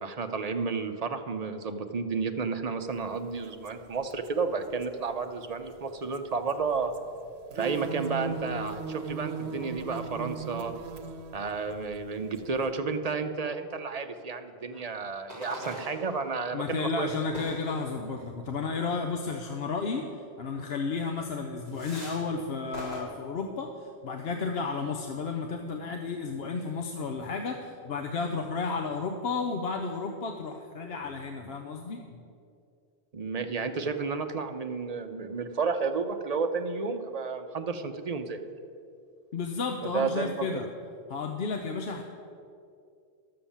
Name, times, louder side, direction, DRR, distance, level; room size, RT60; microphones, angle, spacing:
voice 1, 0.0-6.9 7.5-10.7 11.3-17.3 33.1-38.4 39.8-40.6, right 4 dB, 45° right, 7 dB, 0.7 m, -32 dB
sound 1, 3.7-3.8 4.1-4.3 4.7-4.8 6.1-6.6 6.9-7.0 7.3-12.7, right 6 dB, 75° right, 1.0 m, -37 dB
sound 2, 14.7-14.9 15.3-16.5 17.3-18.2 19.4-19.5 19.9-20.1 20.5-20.7 21.1-21.3 21.6-22.4 22.7-23.0, left 1 dB, 40° left, 3.2 m, -42 dB
voice 2, 16.5-20.0 20.4-32.0 39.3-40.7 41.1-42.0, left 4 dB, 70° left, 4 dB, 1.0 m, -32 dB
11.5 x 7.7 x 7.2 m, 2.5 s
omnidirectional pair, 1.1 m